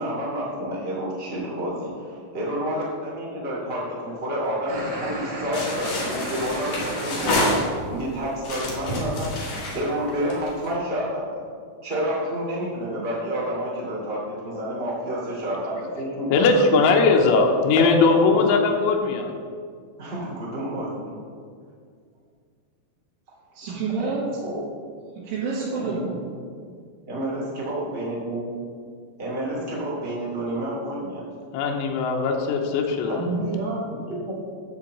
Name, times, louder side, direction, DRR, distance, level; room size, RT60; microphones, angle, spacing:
voice 1, 0.0-9.3 9.7-11.3 11.8-17.2 17.8-18.0 20.0-21.1 24.4-24.6 25.8-26.1 27.1-28.5 29.2-31.2 33.0-33.5 33.9-34.4, equal, 40° right, -7 dB, 0.8 m, -29 dB
sound 1, 4.7-7.6, right 1 dB, 60° right, 2.8 m, -33 dB
sound 2, 5.5-8.0 8.4-10.7, left 1 dB, 55° left, 2.4 m, -28 dB
voice 2, 16.3-19.3 31.5-33.2, left 4 dB, 85° left, 1 dB, 3.3 m, -19 dB
voice 3, 23.6-24.2 25.2-26.2 33.2-33.8, right 4 dB, 80° right, -10 dB, 4.2 m, -28 dB
10.5 x 3.9 x 7.4 m, 2.1 s
omnidirectional pair, 5.6 m